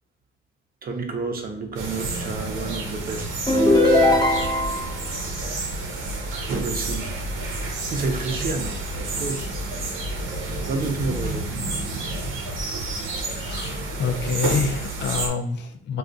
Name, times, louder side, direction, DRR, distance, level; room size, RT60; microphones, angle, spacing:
voice 1, 0.8-4.4 6.3-7.1 7.9-9.5 10.7-11.5 12.2-12.3 13.1-13.4 14.2-14.7, right 3 dB, 50° right, 3 dB, 0.7 m, -31 dB
sound 1, 1.8-15.3, right 2 dB, 85° right, 0.7 m, -30 dB
sound 2, 3.5-4.9, left 1 dB, 20° left, 0.7 m, -18 dB
voice 2, 13.3-16.0, left 6 dB, 60° left, 7 dB, 0.5 m, -27 dB
2.4 x 2.3 x 3.9 m, 0.67 s
cardioid pair, 90°, 20 cm